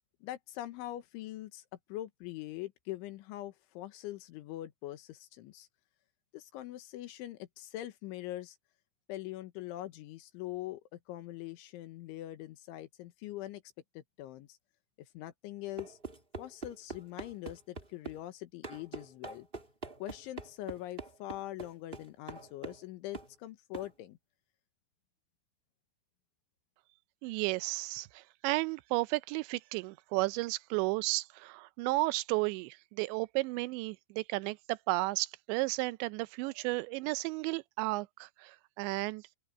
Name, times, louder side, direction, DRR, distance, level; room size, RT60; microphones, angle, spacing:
voice 1, 0.2-1.6 1.9-5.7 6.3-8.6 9.1-13.6 14.0-14.6 15.0-16.0 16.4-19.5 20.0-24.2, left 15 dB, 85° left, 3.7 m, -43 dB
sound 1, 15.8-18.2 18.6-22.9 23.1-23.3 23.7-23.9, right 4 dB, 25° right, 1.2 m, -44 dB
voice 2, 27.2-39.2, right 22 dB, 80° right, 2.8 m, -33 dB
open air
omnidirectional pair, 5.4 m